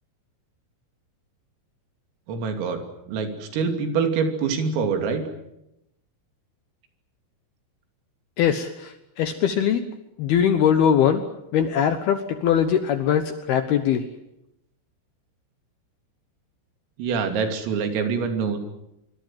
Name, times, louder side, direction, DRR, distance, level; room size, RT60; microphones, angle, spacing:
voice 1, 2.3-2.8 3.1-5.2 17.0-18.6, right 5 dB, 85° right, 5 dB, 5.5 m, -25 dB
voice 2, 8.4-9.8 10.2-11.2 11.5-14.0, left 8 dB, 70° left, 9 dB, 2.4 m, -21 dB
25.5 x 24.5 x 7.5 m, 0.86 s
omnidirectional pair, 5.8 m